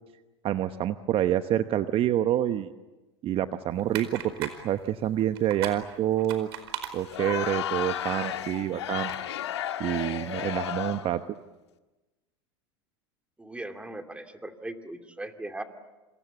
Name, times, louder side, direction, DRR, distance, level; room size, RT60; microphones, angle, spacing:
voice 1, 0.4-2.7 3.2-6.5 6.9-9.1 9.8-11.2, right 11 dB, 40° right, 10 dB, 1.0 m, -27 dB
sound 1, 3.7-9.2, right 9 dB, 70° right, 4.7 m, -42 dB
Crowd, 7.0-11.2, left 11 dB, 85° left, 1.8 m, -33 dB
voice 2, 13.4-15.6, right 2 dB, 10° right, 6 dB, 2.7 m, -39 dB
28.0 x 27.0 x 7.1 m, 1.1 s
hypercardioid pair, 95°, 14 cm